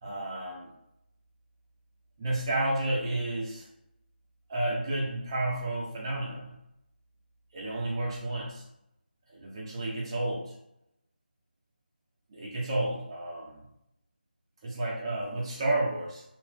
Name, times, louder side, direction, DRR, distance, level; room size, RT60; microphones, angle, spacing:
voice 1, 0.0-0.7 2.2-3.7 4.5-6.6 7.5-8.6 9.3-10.5 12.3-13.6 14.6-16.2, right 1 dB, 30° right, -2 dB, 0.7 m, -31 dB
2.5 x 2.3 x 3.3 m, 0.84 s
figure-of-eight pair, 160°, 5 cm